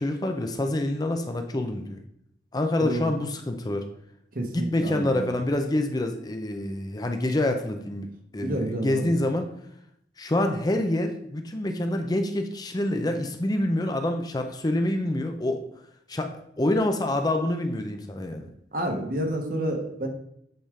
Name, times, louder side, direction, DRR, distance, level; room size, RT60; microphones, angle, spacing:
voice 1, 0.0-2.0 2.5-3.8 4.5-8.1 8.3-9.5 10.2-15.6 16.1-18.5, left 1 dB, 20° left, 6 dB, 0.5 m, -27 dB
voice 2, 2.8-3.1 4.3-5.3 8.4-9.0 18.7-20.1, right 1 dB, 50° right, 3 dB, 1.2 m, -29 dB
7.9 x 3.6 x 4.9 m, 0.74 s
head